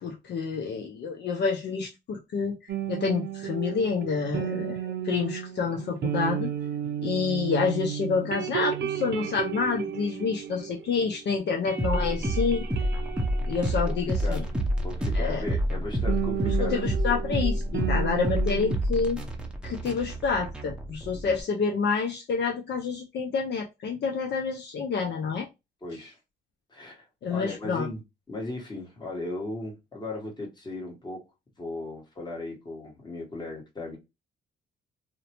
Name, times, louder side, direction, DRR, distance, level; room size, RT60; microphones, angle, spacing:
voice 1, 0.0-2.6 2.9-6.5 7.0-12.6 13.5-14.4 15.1-15.4 16.4-19.2 19.6-25.5 27.2-27.9, left 5 dB, 60° left, 0.5 m, -28 dB
sound 1, 2.7-11.2 11.4-14.9 16.1-18.8, right 10 dB, 55° right, 0.6 m, -33 dB
sound 2, 11.8-21.4, equal, 5° right, 0.6 m, -28 dB
voice 2, 13.9-14.5 14.8-17.3 25.8-26.2 26.7-27.0 27.3-28.0 28.3-31.2 31.6-34.0, left 2 dB, 20° left, 1.2 m, -37 dB
2.5 x 2.1 x 2.9 m
cardioid pair, 90°, 20 cm